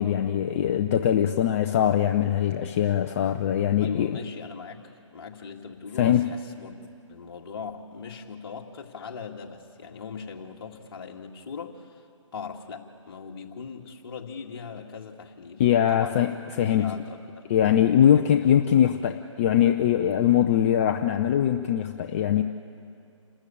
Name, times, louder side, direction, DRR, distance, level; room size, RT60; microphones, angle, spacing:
voice 1, 0.0-4.1 6.0-6.3 15.6-16.3 16.6-16.9 17.5-22.4, left 10 dB, 25° left, 5 dB, 0.6 m, -22 dB
voice 2, 3.8-6.8 7.1-12.1 12.3-15.6 15.9-16.3 16.6-17.5 18.0-18.5, left 5 dB, 50° left, 2 dB, 2.2 m, -40 dB
28.0 x 13.5 x 8.7 m, 2.4 s
figure-of-eight pair, 150°, 17 cm